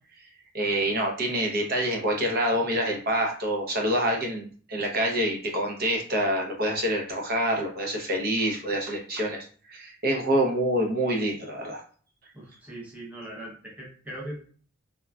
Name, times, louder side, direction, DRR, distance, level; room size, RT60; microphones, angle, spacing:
voice 1, 0.5-11.8, right 1 dB, 45° right, 1 dB, 0.6 m, -26 dB
voice 2, 12.3-14.5, right 1 dB, 5° right, -4 dB, 0.7 m, -40 dB
3.6 x 2.1 x 2.3 m, 0.43 s
head